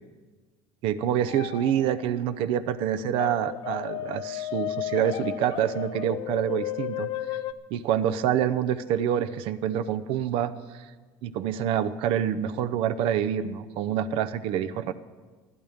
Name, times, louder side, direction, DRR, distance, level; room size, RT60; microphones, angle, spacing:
voice 1, 0.8-7.1 7.7-10.9 11.2-14.9, right 10 dB, 65° right, 12 dB, 0.7 m, -27 dB
sound 1, 1.3-2.2 3.2-7.5, left 13 dB, 50° left, 0.7 m, -34 dB
21.0 x 14.0 x 3.6 m, 1.4 s
cardioid pair, 165°, 10 cm